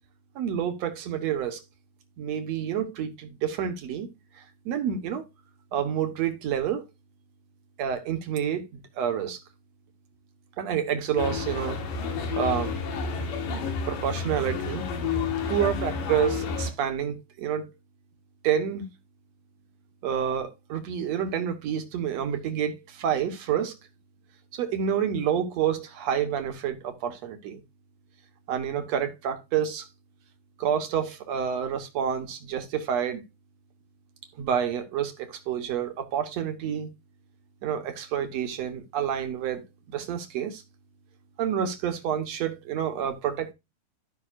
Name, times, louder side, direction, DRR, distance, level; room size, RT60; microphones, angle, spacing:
voice 1, 0.4-1.6 2.2-4.1 4.7-5.2 5.7-6.9 7.8-9.4 10.6-11.8 12.3-12.7 13.9-14.9 15.5-17.6 18.4-18.9 20.0-23.8 24.5-27.6 28.5-29.9 30.6-33.2 34.4-36.9 37.6-40.6 41.4-43.5, right 8 dB, 60° right, 2.0 m, -28 dB
sound 1, 11.2-16.7, left 5 dB, 70° left, 3.5 m, -30 dB
15.0 x 5.7 x 2.4 m
omnidirectional pair, 4.1 m